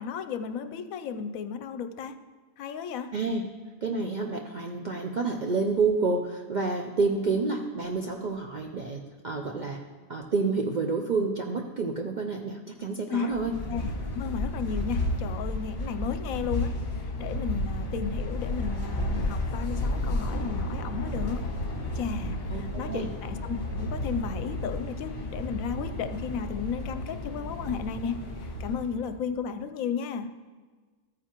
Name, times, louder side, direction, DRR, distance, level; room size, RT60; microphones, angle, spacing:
voice 1, 0.0-2.2 2.6-3.1 13.1-13.4 13.7-21.4 21.9-30.3, left 6 dB, 80° left, 10 dB, 1.0 m, -34 dB
voice 2, 3.1-3.5 3.8-9.8 10.1-13.5 22.5-23.1, right 4 dB, 55° right, 2 dB, 0.5 m, -29 dB
sound 1, 13.3-29.1, left 1 dB, 45° left, 1.7 m, -32 dB
13.5 x 9.2 x 2.9 m, 1.4 s
omnidirectional pair, 1.5 m